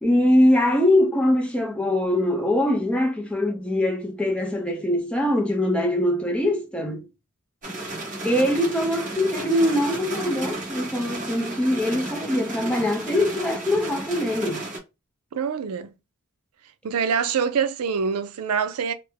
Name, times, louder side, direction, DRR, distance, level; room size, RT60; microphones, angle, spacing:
voice 1, 0.0-7.1 8.2-14.6, left 1 dB, 5° left, 0.5 m, -22 dB
sound 1, 7.6-14.8, right 2 dB, 35° right, 1.4 m, -33 dB
voice 2, 15.3-15.9 16.8-18.9, right 6 dB, 80° right, 0.4 m, -25 dB
3.3 x 2.1 x 3.2 m
head